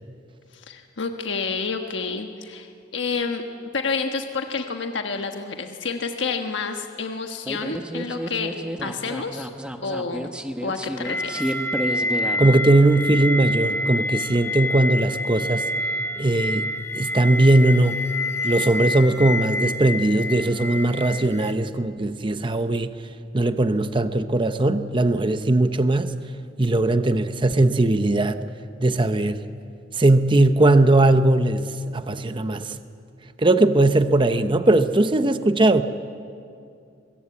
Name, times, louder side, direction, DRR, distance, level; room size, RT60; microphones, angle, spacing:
voice 1, 0.5-3.4 3.7-8.5 8.8-9.5 9.8-10.3 10.6-11.5, left 4 dB, 75° left, 4 dB, 1.3 m, -29 dB
sound 1, 7.5-12.6, right 1 dB, 5° right, 1.0 m, -31 dB
sound 2, 11.0-21.5, left 1 dB, 15° left, 1.3 m, -27 dB
voice 2, 12.4-15.7 16.2-18.0 18.4-22.9 23.3-26.2 26.6-28.4 28.8-29.4 29.9-32.8 33.4-35.8, right 2 dB, 25° right, 9 dB, 0.8 m, -19 dB
23.0 x 22.5 x 8.5 m, 2.4 s
head